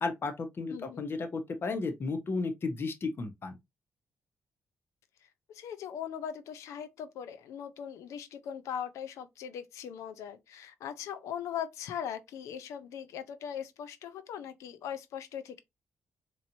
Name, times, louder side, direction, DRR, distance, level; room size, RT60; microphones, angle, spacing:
voice 1, 0.0-3.6, left 3 dB, 50° left, 0.9 m, -33 dB
voice 2, 0.7-1.1 5.2-15.6, left 8 dB, 85° left, 0.6 m, -40 dB
4.1 x 3.1 x 2.6 m
cardioid pair, 65°, 5 cm